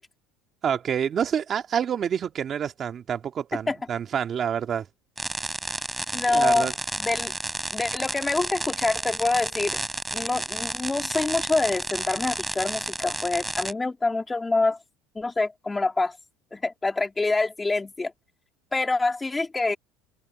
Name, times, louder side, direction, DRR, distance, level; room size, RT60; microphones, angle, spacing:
voice 1, 0.6-4.9 6.3-6.7, right 8 dB, 35° right, 2.0 m, -27 dB
sound 1, 5.2-13.7, right 2 dB, 10° right, 3.1 m, -31 dB
voice 2, 6.1-6.7 7.0-7.3 7.7-9.8 10.1-14.8 15.1-16.2 16.5-18.1 18.7-19.8, left 3 dB, 15° left, 2.7 m, -26 dB
supercardioid pair, 115°, 0 cm